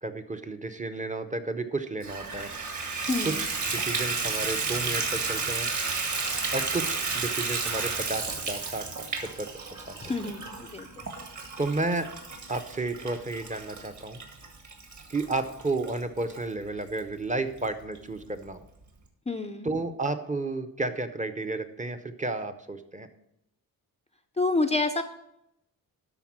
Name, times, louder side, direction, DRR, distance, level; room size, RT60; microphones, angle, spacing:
voice 1, 0.0-2.5 3.2-5.7 6.5-9.5 9.9-10.0 11.6-12.1 12.5-14.2 15.1-18.6 19.6-23.1, right 2 dB, 20° right, 8 dB, 0.6 m, -32 dB
Water tap faucet / Bathtub (filling or washing), 2.0-16.4 17.0-17.1 17.6-17.7 17.9-18.0, right 4 dB, 50° right, 1.9 m, -32 dB
voice 2, 3.1-3.5 10.0-11.1 19.3-19.7 24.4-25.0, left 3 dB, 20° left, 7 dB, 0.4 m, -28 dB
12.0 x 4.3 x 7.2 m, 0.80 s
wide cardioid pair, 150°, 38 cm